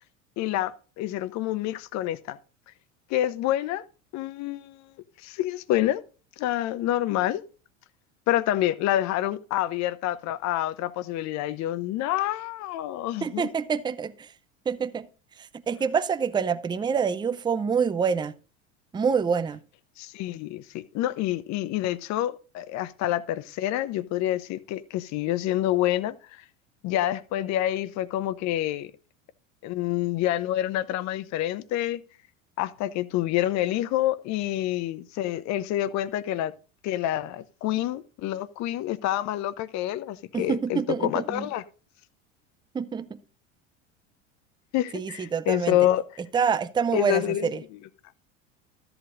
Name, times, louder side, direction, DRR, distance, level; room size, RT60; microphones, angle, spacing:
voice 1, 0.4-2.4 3.1-3.8 4.1-4.8 5.2-6.0 6.4-7.4 8.3-13.5 20.0-26.4 26.8-28.9 29.6-32.0 32.6-36.5 36.8-41.6 44.7-46.2 46.9-47.5, left 13 dB, 45° left, 0.8 m, -27 dB
voice 2, 13.2-14.3 14.7-15.1 15.4-18.3 18.9-19.6 40.3-41.5 42.7-43.2 44.9-45.8 46.3-47.6, right 6 dB, 10° right, 0.5 m, -26 dB
13.5 x 7.9 x 2.5 m
hypercardioid pair, 80°, 38 cm